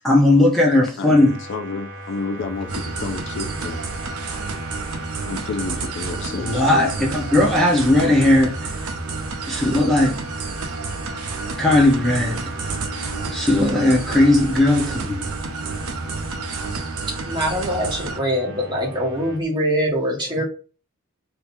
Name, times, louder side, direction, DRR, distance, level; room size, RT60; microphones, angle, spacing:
voice 1, 0.0-1.3 6.4-8.7 9.5-10.2 11.6-12.4 13.3-15.2, left 1 dB, ahead, 0.7 m, -17 dB
voice 2, 1.0-3.8 5.3-6.8, left 4 dB, 55° left, 0.4 m, -30 dB
sound 1, 1.1-19.4, right 1 dB, 55° right, 1.0 m, -38 dB
sound 2, 2.4-16.7, left 2 dB, 30° left, 1.4 m, -43 dB
sound 3, 2.7-18.2, right 4 dB, 80° right, 0.7 m, -30 dB
voice 3, 17.1-20.4, equal, 20° right, 1.4 m, -23 dB
3.8 x 2.8 x 2.6 m
head